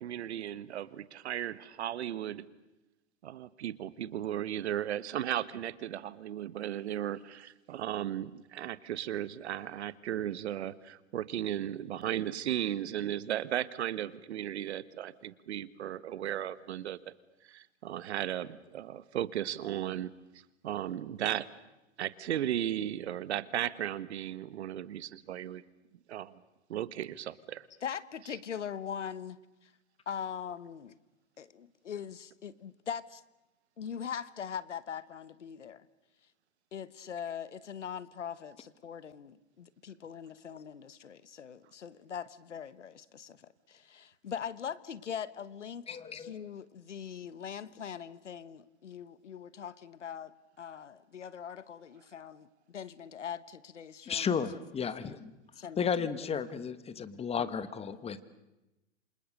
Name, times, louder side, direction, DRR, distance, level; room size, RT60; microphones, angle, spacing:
voice 1, 0.0-2.4 3.2-17.1 17.4-20.1 20.6-21.5 22.0-25.6 26.1-26.4 26.7-27.7, right 11 dB, 65° right, 1.4 m, -35 dB
voice 2, 27.8-29.7 30.1-31.0 31.4-33.2 33.8-35.9 36.7-50.3 50.6-54.4 55.0-55.2 55.6-56.3 57.4-57.5, left 8 dB, 85° left, 1.3 m, -42 dB
voice 3, 45.9-46.3 54.1-55.3 55.8-58.2, left 6 dB, 15° left, 1.5 m, -33 dB
28.0 x 26.5 x 6.7 m
hypercardioid pair, 110°, 35 cm